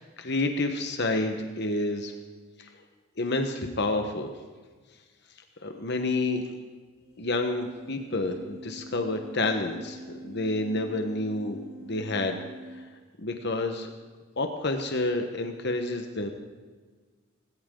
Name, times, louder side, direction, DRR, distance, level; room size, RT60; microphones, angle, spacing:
voice 1, 0.2-2.1 2.6-2.7 3.2-4.3 5.6-6.4 7.2-12.4 12.7-12.9 13.2-13.9 14.4-16.3, left 2 dB, 55° left, 5 dB, 1.3 m, -29 dB
sound 1, 7.0-12.9, right 1 dB, 35° right, 4.2 m, -45 dB
19.0 x 17.5 x 3.9 m, 1.4 s
head